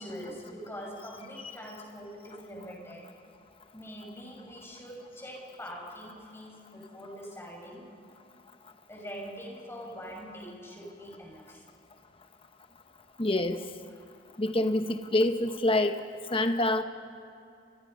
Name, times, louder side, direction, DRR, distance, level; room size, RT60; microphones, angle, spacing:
voice 1, 0.0-3.0 3.7-7.9 8.9-11.6 13.9-14.1, equal, 15° left, -1 dB, 6.3 m, -43 dB
voice 2, 13.2-13.6 14.4-16.0 16.3-16.8, left 1 dB, 30° left, 7 dB, 0.9 m, -26 dB
30.0 x 25.5 x 5.5 m, 2.5 s
head